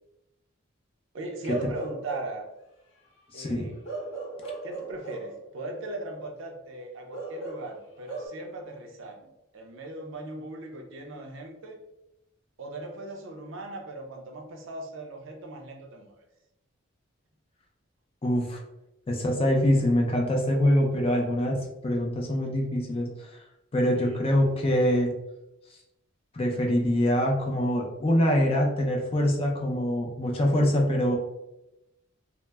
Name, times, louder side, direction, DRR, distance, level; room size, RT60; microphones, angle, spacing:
voice 1, 1.1-2.5 3.3-3.8 4.6-11.8 12.6-16.2 23.9-24.2, right 2 dB, 65° right, 2 dB, 0.5 m, -39 dB
Bark / Livestock farm animals working animals, 1.4-2.4 3.8-5.4 7.1-8.3, right 3 dB, 65° left, 0.8 m, -37 dB
voice 2, 3.3-3.7 18.2-18.6 19.1-23.4 23.7-25.1 26.3-31.2, equal, 30° left, 0 dB, 0.4 m, -24 dB
2.1 x 2.0 x 3.3 m, 0.89 s
head